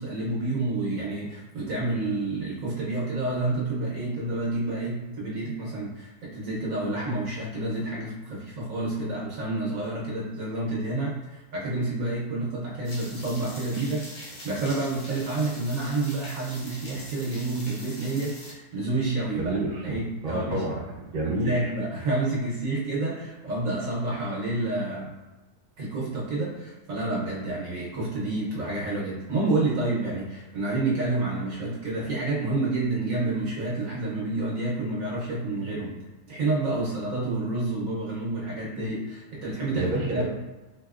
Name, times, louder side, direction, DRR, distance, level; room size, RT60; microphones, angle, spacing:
voice 1, 0.0-19.6 19.8-20.6 21.2-25.1 25.8-36.0 36.3-40.2, right 2 dB, 60° right, -5 dB, 1.1 m, -29 dB
sound 1, 12.8-18.5, left 1 dB, 60° left, 0.3 m, -43 dB
voice 2, 19.3-19.9 20.2-21.5 39.7-40.2, right 2 dB, 40° right, -4 dB, 0.9 m, -29 dB
4.1 x 2.8 x 2.4 m, 1.2 s
omnidirectional pair, 1.7 m